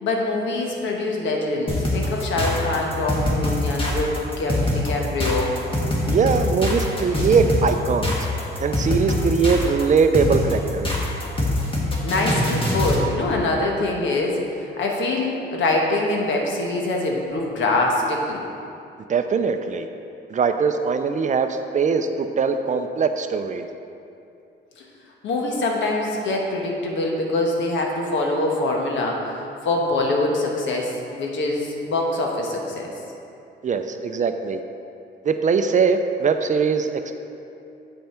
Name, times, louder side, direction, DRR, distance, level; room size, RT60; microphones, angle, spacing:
voice 1, 0.0-5.6 12.0-18.4 24.8-24.9 25.2-33.0, left 2 dB, 70° left, 0 dB, 1.2 m, -24 dB
sound 1, 1.7-13.1, left 1 dB, 25° left, 1.5 m, -23 dB
voice 2, 6.1-8.1 8.6-10.9 19.1-19.9 20.3-21.5 21.7-23.7 33.6-34.6 35.3-37.2, right 5 dB, 40° right, 7 dB, 0.4 m, -21 dB
7.7 x 5.4 x 4.4 m, 2.7 s
cardioid pair, 90°, 20 cm